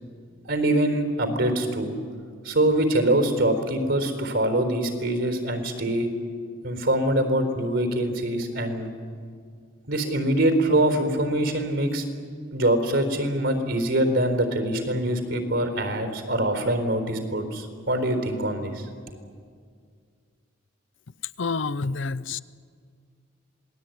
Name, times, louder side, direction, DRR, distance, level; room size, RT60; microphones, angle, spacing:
voice 1, 0.4-2.0 2.4-6.1 6.6-8.9 9.9-12.0 12.5-18.9, right 1 dB, 70° right, 7 dB, 4.2 m, -24 dB
voice 2, 21.4-22.4, left 4 dB, 70° left, 18 dB, 0.6 m, -28 dB
27.0 x 19.5 x 9.4 m, 2.1 s
head